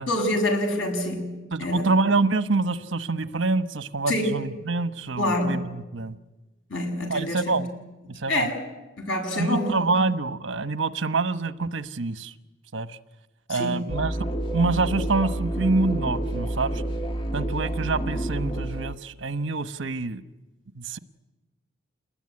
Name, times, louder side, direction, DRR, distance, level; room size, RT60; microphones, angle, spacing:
voice 1, 0.1-1.8 4.1-4.3 5.2-5.7 6.7-7.6 8.3-8.5 9.0-9.7 13.5-13.8, left 1 dB, 75° left, 3 dB, 7.5 m, -26 dB
voice 2, 1.5-6.2 7.1-7.7 8.1-8.5 9.3-12.3 12.7-13.0 13.5-14.2 14.5-16.8 17.3-20.2 20.7-21.0, right 3 dB, 75° right, 11 dB, 1.2 m, -26 dB
sound 1, 13.9-19.0, right 1 dB, 25° left, 1.5 m, -29 dB
28.5 x 20.5 x 9.7 m, 1.1 s
head